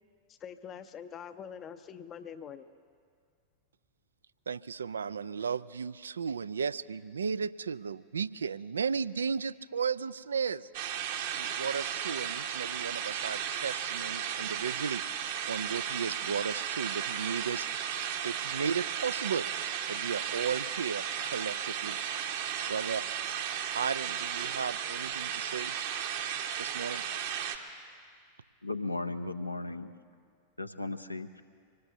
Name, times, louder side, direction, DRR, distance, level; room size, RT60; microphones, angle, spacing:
voice 1, 0.3-2.7, left 8 dB, 30° left, 11 dB, 0.6 m, -44 dB
voice 2, 4.5-10.7 11.4-15.0 15.4-17.7 18.2-22.0 22.7-23.0 23.7-25.7 26.6-27.0, right 6 dB, 70° right, 17 dB, 0.3 m, -35 dB
sound 1, 10.7-27.6, right 9 dB, 55° right, 1.1 m, -35 dB
voice 3, 28.6-29.9 30.6-31.3, left 2 dB, 85° left, 8 dB, 0.6 m, -36 dB
25.0 x 19.0 x 2.7 m, 2.2 s
figure-of-eight pair, 90°, 0 cm